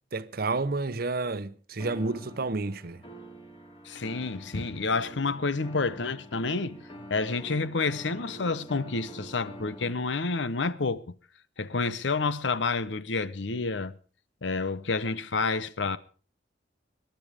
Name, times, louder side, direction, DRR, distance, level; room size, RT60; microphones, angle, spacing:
voice 1, 0.1-3.0, right 3 dB, 55° right, 0.8 m, -30 dB
sound 1, 1.8-9.9, right 1 dB, 30° left, 3.0 m, -46 dB
voice 2, 3.8-6.8 7.1-11.0 11.6-13.9 14.4-16.0, left 4 dB, 90° left, 0.8 m, -29 dB
23.0 x 10.5 x 5.0 m
head